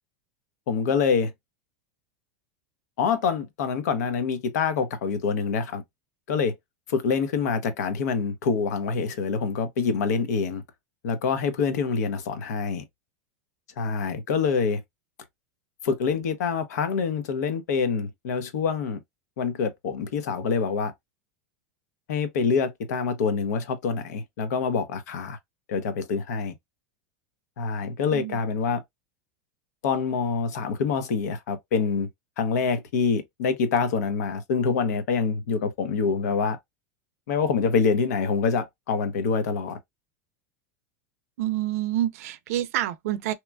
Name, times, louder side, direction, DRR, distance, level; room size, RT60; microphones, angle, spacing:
voice 1, 0.7-1.3 3.0-5.8 6.3-6.5 6.9-10.6 11.0-12.8 13.8-14.8 15.8-19.0 19.4-20.9 22.1-25.4 25.7-26.5 27.6-28.8 29.8-32.1 32.4-36.6 37.3-39.8, left 5 dB, 80° left, 0.8 m, -26 dB
voice 2, 41.4-43.3, right 13 dB, 65° right, 0.4 m, -27 dB
2.9 x 2.3 x 2.2 m
supercardioid pair, 165°, 9 cm